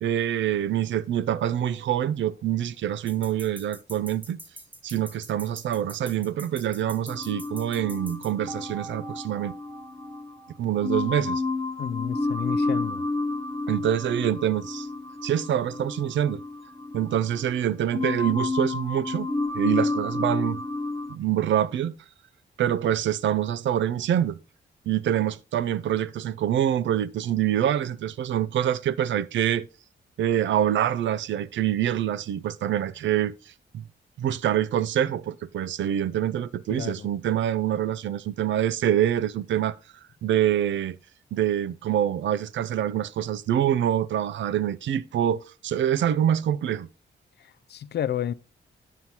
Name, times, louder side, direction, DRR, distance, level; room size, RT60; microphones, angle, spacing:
voice 1, 0.0-4.4 4.8-9.5 10.6-11.4 13.7-14.9 15.2-16.4 16.9-19.3 19.5-20.6 21.1-21.9 22.6-24.4 24.9-29.7 30.2-33.3 33.7-33.8 34.2-39.8 40.2-41.0 41.3-46.9, right 10 dB, 75° right, 0.4 m, -25 dB
sound 1, 1.3-2.8 8.5-11.8, right 5 dB, 50° right, 1.2 m, -46 dB
sound 2, 3.1-8.3, equal, 10° right, 1.1 m, -44 dB
sound 3, 7.1-10.3 10.8-17.6 17.9-21.1, left 2 dB, 10° left, 1.0 m, -30 dB
voice 2, 11.8-13.1 36.7-37.1 47.4-48.3, left 9 dB, 60° left, 0.4 m, -31 dB
9.4 x 7.3 x 2.8 m
cardioid pair, 105°, 19 cm